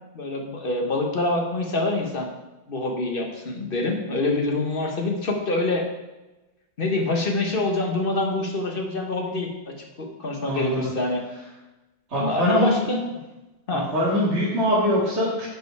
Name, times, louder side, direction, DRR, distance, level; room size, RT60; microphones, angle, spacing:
voice 1, 0.1-2.3 2.7-5.9 6.8-11.2 12.2-13.1 13.7-13.9, left 2 dB, 35° left, 2 dB, 1.2 m, -25 dB
voice 2, 10.5-10.9 12.1-12.8 13.7-15.5, equal, 40° right, -10 dB, 2.6 m, -23 dB
9.7 x 5.4 x 4.7 m, 1.1 s
omnidirectional pair, 1.8 m